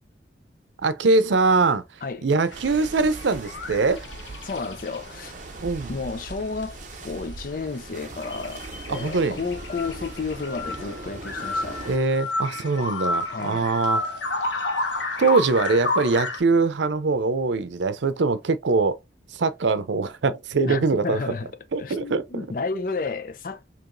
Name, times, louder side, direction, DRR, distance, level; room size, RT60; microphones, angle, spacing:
voice 1, 0.8-1.8 2.2-4.1 5.6-6.0 8.9-9.4 11.9-14.0 15.2-19.0 19.3-21.2 21.7-22.5, right 3 dB, 85° right, 0.6 m, -22 dB
sound 1, 2.5-5.3 5.6-5.7 6.1-6.3 6.6-6.7 6.9-7.0 7.3-16.4, left 2 dB, 85° left, 0.9 m, -31 dB
sound 2, 2.5-12.0, right 3 dB, 45° right, 0.6 m, -40 dB
voice 2, 4.4-5.4 5.9-12.0 13.3-13.7 20.7-21.5 21.8-23.7, left 4 dB, 50° left, 0.5 m, -32 dB
4.7 x 3.0 x 2.5 m
head